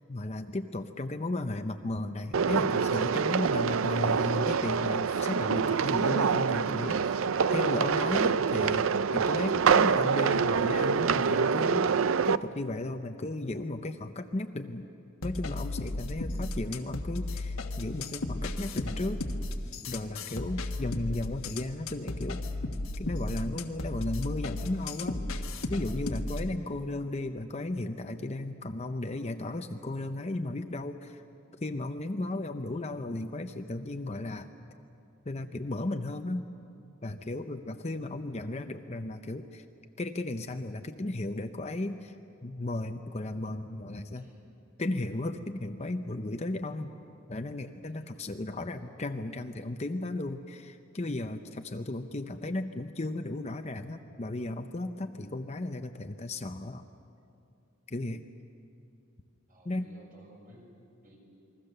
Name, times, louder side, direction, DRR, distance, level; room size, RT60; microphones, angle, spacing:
voice 1, 0.1-7.2 7.5-14.9 15.2-19.2 19.8-22.4 23.0-25.2 25.7-31.2 31.6-34.5 35.3-36.5 37.0-39.6 40.0-42.2 42.4-44.2 44.8-46.9 47.3-56.9 57.9-58.3 59.6-59.9, left 2 dB, 30° left, 7 dB, 0.7 m, -35 dB
sound 1, 2.3-12.4, right 6 dB, 70° right, 0.5 m, -26 dB
sound 2, 15.2-26.5, left 2 dB, 85° left, 1.4 m, -35 dB
voice 2, 44.1-44.4 47.9-48.1 52.0-52.3 59.5-60.7 61.0-61.2, equal, 40° right, -1 dB, 6.0 m, -56 dB
28.0 x 22.0 x 6.8 m, 2.6 s
head